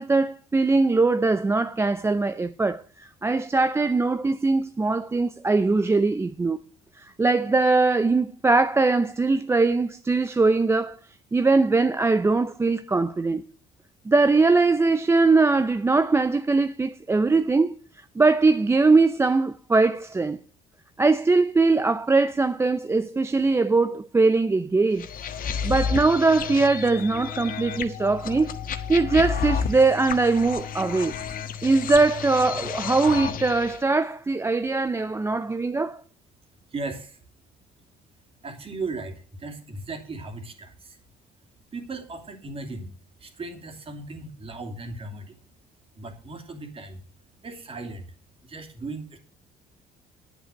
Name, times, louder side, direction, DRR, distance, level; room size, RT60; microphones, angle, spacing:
voice 1, 0.0-6.6 7.0-11.0 11.3-13.4 14.1-17.7 18.2-20.4 21.0-25.1 25.6-28.6 28.9-31.2 31.6-36.0, right 3 dB, 15° right, 0.5 m, -21 dB
sound 1, 25.0-33.8, left 7 dB, 55° left, 1.4 m, -31 dB
voice 2, 36.7-37.2 38.4-41.0 41.7-42.9 43.2-45.4 46.0-47.0 47.4-48.1 48.4-49.2, right 3 dB, 35° right, 2.7 m, -36 dB
10.5 x 8.2 x 6.3 m
cardioid pair, 110°, 17 cm